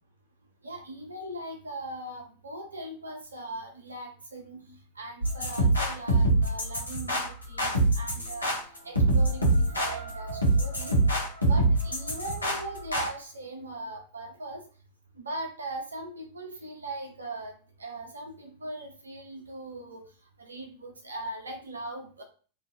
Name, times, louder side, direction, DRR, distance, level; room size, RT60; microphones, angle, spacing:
voice 1, 0.6-4.7 5.0-11.0 11.4-14.6 15.1-17.5 17.8-20.1 20.4-22.2, right 1 dB, 75° right, 3 dB, 0.5 m, -40 dB
sound 1, 5.2-13.1, right 2 dB, 80° left, 0.6 m, -25 dB
2.4 x 2.2 x 2.5 m, 0.39 s
figure-of-eight pair, 90°, 0 cm